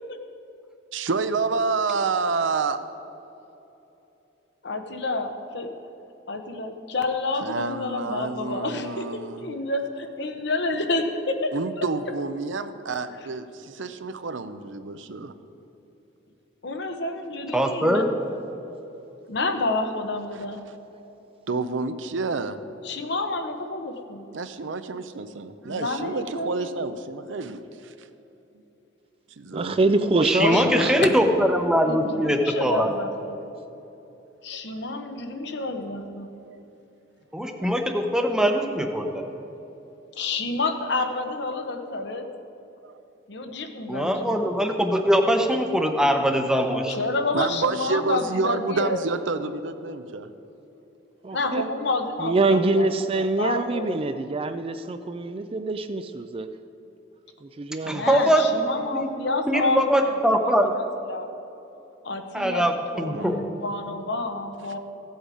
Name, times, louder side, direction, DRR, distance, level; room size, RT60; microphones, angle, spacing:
voice 1, 0.9-2.8 7.4-9.5 11.5-15.3 18.5-19.1 21.5-22.6 24.3-27.9 29.4-29.8 30.5-31.3 34.7-35.1 35.4-35.5 36.4-36.6 37.6-37.7 39.4-39.5 42.9-43.0 43.4-43.5 47.3-50.3 63.1-63.4, right 4 dB, 75° right, 10 dB, 0.6 m, -29 dB
voice 2, 4.6-5.7 6.3-11.5 11.8-11.9 16.6-18.0 19.3-20.6 22.8-24.3 25.6-26.7 30.4-31.5 31.8-33.4 34.4-36.3 40.1-42.3 43.3-44.4 46.9-49.0 51.3-54.0 57.8-61.3 62.0-64.8, left 2 dB, 60° left, 6 dB, 1.0 m, -29 dB
voice 3, 17.5-18.1 30.2-32.9 37.3-39.2 43.9-46.9 57.9-58.5 58.9-59.1 59.5-60.7 62.3-63.4, equal, 5° right, 4 dB, 0.8 m, -22 dB
voice 4, 29.5-31.1 51.2-51.6 52.2-56.5 57.4-58.1, right 3 dB, 30° right, 9 dB, 0.4 m, -25 dB
15.5 x 8.0 x 4.9 m, 3.0 s
head